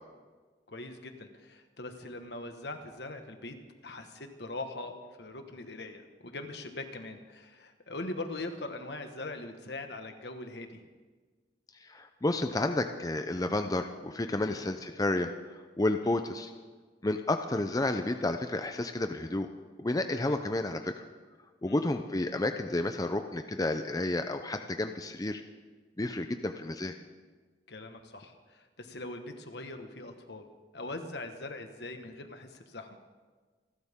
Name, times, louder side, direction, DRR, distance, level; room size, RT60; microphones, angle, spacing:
voice 1, 0.7-3.5 3.8-10.8 14.4-14.7 16.0-16.2 20.1-20.4 21.6-21.8 26.0-26.2 27.7-30.5 30.7-33.0, left 2 dB, 65° left, 6 dB, 1.6 m, -42 dB
voice 2, 11.8-15.3 15.8-16.5 17.0-19.5 19.8-20.9 21.6-25.4 26.0-26.9, left 2 dB, 20° left, 7 dB, 0.6 m, -31 dB
28.0 x 12.5 x 3.7 m, 1.4 s
head